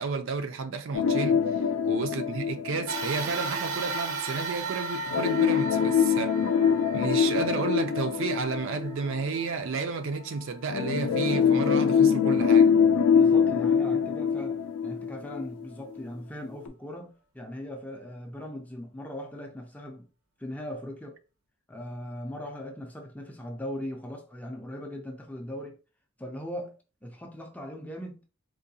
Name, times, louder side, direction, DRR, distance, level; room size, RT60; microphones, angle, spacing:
voice 1, 0.0-1.4 1.9-6.4 6.9-12.7, right 4 dB, 60° right, 0.4 m, -31 dB
sound 1, 0.9-3.6 5.1-9.5 10.7-15.6 16.0-16.1 16.7-16.8, left 7 dB, 80° left, 0.4 m, -24 dB
sound 2, 2.9-11.5 12.1-12.2 13.3-13.4, right 3 dB, 80° right, 0.8 m, -36 dB
voice 2, 13.1-20.1 20.4-21.2 21.7-25.8 26.2-28.2, left 1 dB, 5° left, 0.4 m, -39 dB
3.7 x 2.6 x 2.7 m
head